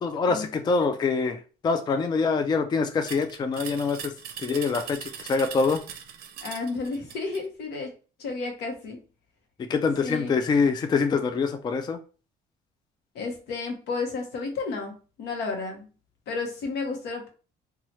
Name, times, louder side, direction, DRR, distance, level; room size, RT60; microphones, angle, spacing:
voice 1, 0.0-4.1 4.4-5.8 9.6-12.0, left 4 dB, 25° left, 8 dB, 0.3 m, -25 dB
sound 1, 3.1-7.5, right 8 dB, 65° right, 0.5 m, -40 dB
voice 2, 6.4-7.9 8.2-9.0 10.0-10.4 13.1-15.9 16.3-17.3, left 4 dB, 80° left, 3 dB, 0.9 m, -32 dB
2.9 x 2.3 x 3.0 m, 0.37 s
cardioid pair, 110°, 17 cm